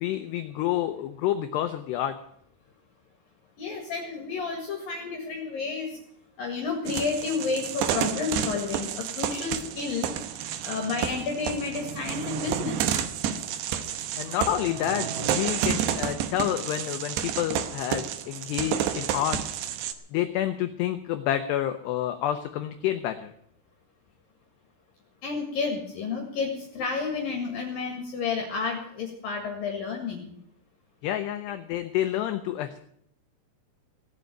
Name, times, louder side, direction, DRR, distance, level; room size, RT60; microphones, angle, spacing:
voice 1, 0.0-2.2 14.2-19.4 20.1-23.3 31.0-32.8, left 12 dB, 85° left, 9 dB, 2.4 m, -29 dB
voice 2, 3.6-6.0 6.4-10.1 10.6-13.0 25.2-30.4, left 4 dB, 55° left, 2 dB, 3.0 m, -31 dB
sound 1, 6.9-19.9, right 10 dB, 70° right, 2.8 m, -30 dB
18.0 x 7.7 x 9.3 m, 0.68 s
omnidirectional pair, 5.8 m